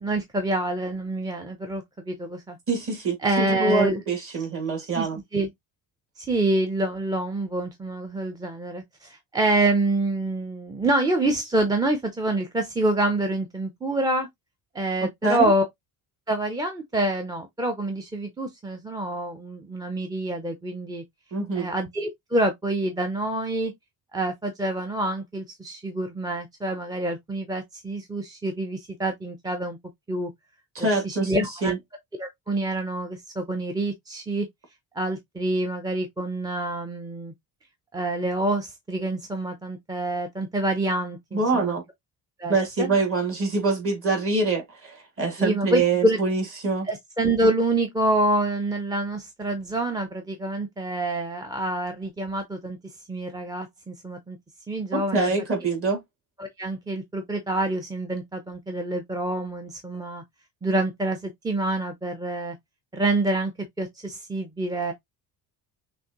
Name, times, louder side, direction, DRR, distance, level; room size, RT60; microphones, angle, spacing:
voice 1, 0.0-2.6 3.2-4.0 4.9-5.1 5.3-5.5 6.2-14.3 14.7-15.6 16.3-21.0 21.6-23.7 24.1-29.8 30.1-30.3 30.8-31.7 32.2-34.5 34.9-37.3 37.9-41.8 42.4-42.9 45.4-46.2 46.8-52.8 53.1-54.4 54.7-55.3 56.4-60.2 60.6-62.6 62.9-64.9, right 2 dB, 10° right, 0.5 m, -27 dB
voice 2, 2.7-5.2 15.2-15.5 21.3-21.7 30.7-31.8 41.3-41.8 42.5-46.9 54.9-56.0, right 3 dB, 35° right, 2.2 m, -25 dB
6.1 x 2.6 x 2.9 m
cardioid pair, 160°, 39 cm